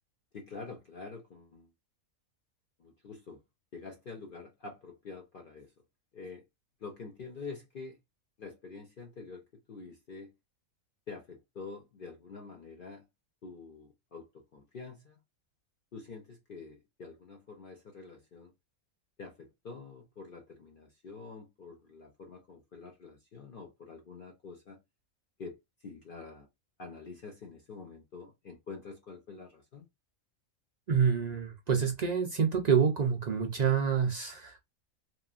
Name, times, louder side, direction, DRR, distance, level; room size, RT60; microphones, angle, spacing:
voice 1, 0.3-1.7 2.8-3.4 3.7-5.7 6.1-6.4 6.8-8.0 8.4-10.3 11.1-13.1 13.4-15.2 15.9-18.5 19.2-24.8 25.4-26.5 26.8-29.9, left 4 dB, 55° left, 0.6 m, -47 dB
voice 2, 30.9-34.6, right 6 dB, 65° right, 0.4 m, -27 dB
3.0 x 2.4 x 2.4 m
omnidirectional pair, 1.4 m